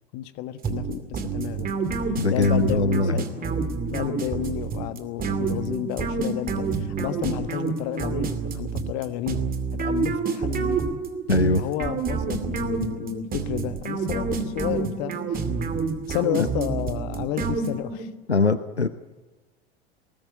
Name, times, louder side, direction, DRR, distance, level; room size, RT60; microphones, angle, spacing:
voice 1, 0.1-1.7 2.3-3.6 3.9-9.5 9.7-10.8 11.6-15.5 16.1-18.1, left 13 dB, 50° left, 11 dB, 1.4 m, -31 dB
sound 1, 0.6-18.1, right 5 dB, 25° right, 2.4 m, -28 dB
voice 2, 2.2-3.1 11.3-11.6 18.3-18.9, left 3 dB, 90° left, 13 dB, 0.9 m, -21 dB
21.0 x 19.0 x 9.8 m, 1.2 s
figure-of-eight pair, 80°, 32 cm